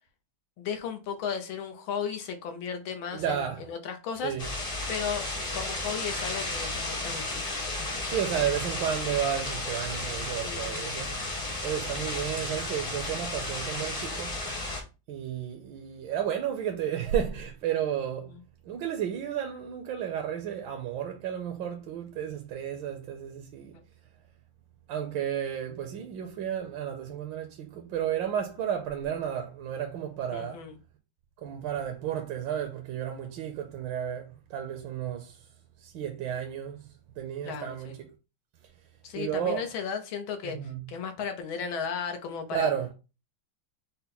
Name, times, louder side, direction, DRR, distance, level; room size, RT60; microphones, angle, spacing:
voice 1, 0.6-4.3 4.9-5.3 5.5-7.7 10.4-11.0 18.3-18.4 23.7-23.8 30.3-30.8 37.4-38.0 39.0-42.7, left 6 dB, 90° left, 1.7 m, -35 dB
voice 2, 3.1-3.6 4.2-4.4 8.1-11.2 11.6-14.4 15.1-18.3 18.6-23.7 24.9-30.6 31.4-35.5 35.8-36.9 37.2-37.9 39.1-39.6 40.4-40.8 42.5-42.9, right 9 dB, 75° right, 1.4 m, -32 dB
sound 1, 4.4-14.8, left 2 dB, 30° left, 0.7 m, -33 dB
5.5 x 2.2 x 3.9 m
omnidirectional pair, 2.1 m